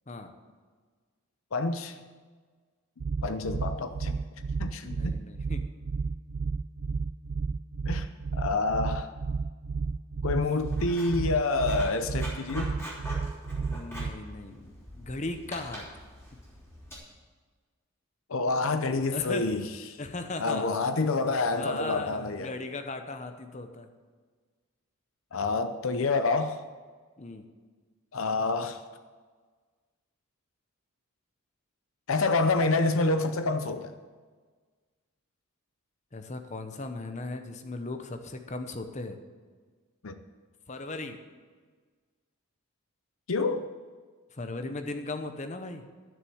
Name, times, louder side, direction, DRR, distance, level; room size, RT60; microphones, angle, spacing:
voice 1, 1.5-2.0 3.2-4.2 4.6-5.1 7.9-8.1 8.4-9.1 10.2-12.7 18.3-19.7 20.4-22.5 25.3-26.6 28.1-28.8 32.1-33.9 40.0-40.1 43.3-43.7, left 3 dB, 65° left, 9 dB, 0.6 m, -27 dB
sound 1, 3.0-14.1, right 4 dB, 50° right, 0.3 m, -32 dB
voice 2, 4.8-5.6 13.7-14.6 14.9-15.9 19.1-19.5 20.0-20.9 21.6-23.9 25.6-25.7 27.2-27.5 36.1-39.2 40.7-41.2 44.3-45.8, left 2 dB, 30° left, 7 dB, 0.8 m, -37 dB
Writing, 10.5-16.9, equal, 10° left, 3.2 m, -44 dB
12.5 x 6.7 x 7.9 m, 1.5 s
head